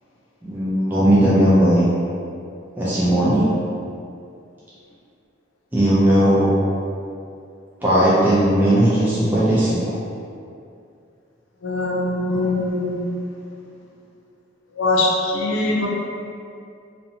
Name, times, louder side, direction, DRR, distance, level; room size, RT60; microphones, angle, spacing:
voice 1, 0.4-1.9 2.8-3.4 5.7-6.5 7.8-9.8, right 1 dB, 10° right, -10 dB, 0.3 m, -17 dB
voice 2, 11.6-13.2 14.7-15.9, left 2 dB, 85° left, -2 dB, 0.4 m, -22 dB
2.7 x 2.0 x 2.6 m, 2.5 s
head